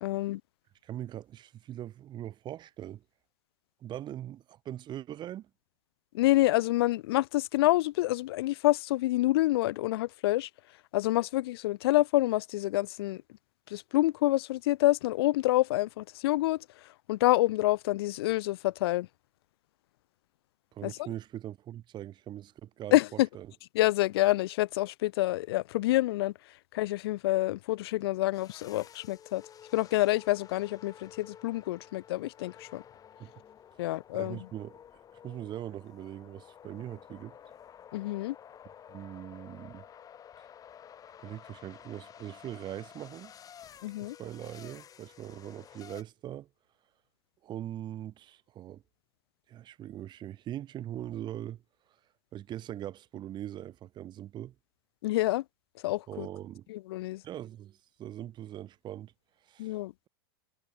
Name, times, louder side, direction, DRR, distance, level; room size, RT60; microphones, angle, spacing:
voice 1, 0.0-0.4 6.1-10.5 10.9-13.2 13.7-16.7 17.1-19.1 20.8-20.9 22.9-23.3 23.7-26.3 26.7-29.4 29.7-32.8 33.8-34.4 37.9-38.4 43.8-44.2 55.0-55.4 55.8-56.3 56.7-57.2 59.6-59.9, left 17 dB, 65° left, 0.6 m, -27 dB
voice 2, 0.8-3.0 3.8-5.5 20.7-23.5 33.2-33.3 34.1-34.8 35.1-37.4 38.9-39.8 41.2-43.3 44.0-46.5 47.4-48.8 49.5-51.6 52.3-54.5 56.1-56.7 57.2-59.1 59.4-59.8, right 12 dB, 35° right, 1.5 m, -41 dB
sound 1, 28.3-46.0, left 9 dB, 25° left, 1.3 m, -52 dB
hypercardioid pair, 105°, 14 cm